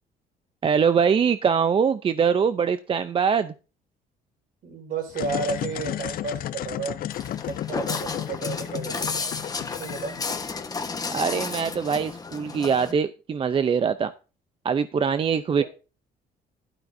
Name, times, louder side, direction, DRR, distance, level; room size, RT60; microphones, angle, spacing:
voice 1, 0.6-3.5 11.1-14.1 14.6-15.6, right 6 dB, 30° right, 12 dB, 0.5 m, -23 dB
voice 2, 4.6-7.0 7.5-9.1 9.8-10.2 15.3-15.6, right 4 dB, 60° right, 3 dB, 5.1 m, -32 dB
sound 1, 5.1-10.9, left 12 dB, 60° left, 0.5 m, -33 dB
Walk footsteps, 7.1-12.9, left 4 dB, 20° left, 1.2 m, -33 dB
12.0 x 12.0 x 2.7 m, 0.34 s
cardioid pair, 110°, 17 cm